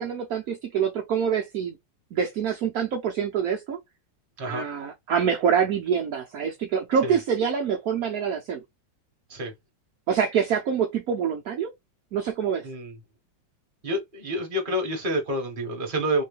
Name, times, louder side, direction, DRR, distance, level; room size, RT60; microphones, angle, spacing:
voice 1, 0.0-1.8 2.1-3.8 4.4-8.6 10.1-11.7 12.1-12.7, right 7 dB, 65° right, 1.1 m, -26 dB
voice 2, 12.6-12.9 13.8-16.2, right 1 dB, 30° right, 1.4 m, -28 dB
3.8 x 3.2 x 3.2 m
omnidirectional pair, 1.9 m